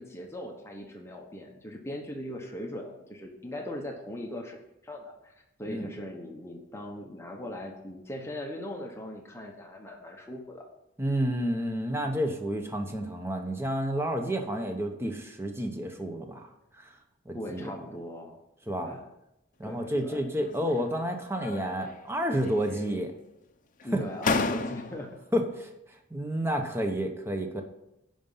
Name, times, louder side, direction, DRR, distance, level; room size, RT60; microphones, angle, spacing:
voice 1, 0.0-5.3 5.6-10.6 17.3-18.4 18.8-19.1 19.6-20.2 23.8-25.2, left 1 dB, 15° left, 1 dB, 1.0 m, -39 dB
voice 2, 11.0-16.9 17.3-17.7 18.7-18.9 19.6-23.1 23.9-24.0 25.3-27.6, equal, 10° right, 4 dB, 0.9 m, -30 dB
sound 1, 20.4-21.0 21.3-22.1 22.4-23.2 23.8-23.9 24.2-25.2, left 3 dB, 40° left, 0.6 m, -33 dB
11.0 x 5.1 x 5.6 m, 0.88 s
head